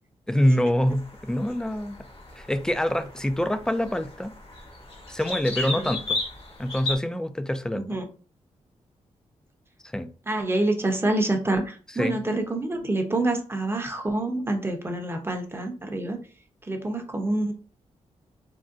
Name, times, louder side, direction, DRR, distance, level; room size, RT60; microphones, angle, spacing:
voice 1, 0.3-2.0 2.4-4.3 5.1-6.2 6.6-7.8 9.9-10.1 12.0-12.2, equal, 5° left, 9 dB, 0.4 m, -25 dB
sound 1, 0.9-7.0, left 2 dB, 50° left, 1.1 m, -35 dB
voice 2, 7.7-8.1 10.3-16.2 16.7-17.5, right 2 dB, 20° right, 4 dB, 0.8 m, -27 dB
3.6 x 2.2 x 2.5 m, 0.39 s
cardioid pair, 70°, 12 cm